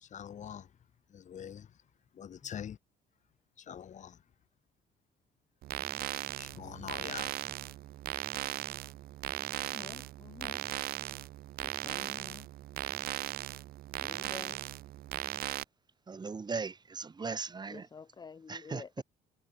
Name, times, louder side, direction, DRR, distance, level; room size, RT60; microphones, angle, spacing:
voice 1, 0.1-0.7 1.1-1.7 2.2-2.8 3.7-4.2 6.4-7.3, left 9 dB, 45° left, 1.6 m, -44 dB
sound 1, 5.6-15.6, right 15 dB, 60° right, 0.5 m, -38 dB
voice 2, 9.6-10.6 11.6-12.5 14.0-14.6 15.2-15.3 17.7-19.0, left 5 dB, 25° left, 0.9 m, -50 dB
voice 3, 16.1-17.9 18.5-19.0, right 4 dB, 25° right, 1.9 m, -38 dB
cardioid pair, 110°, 17 cm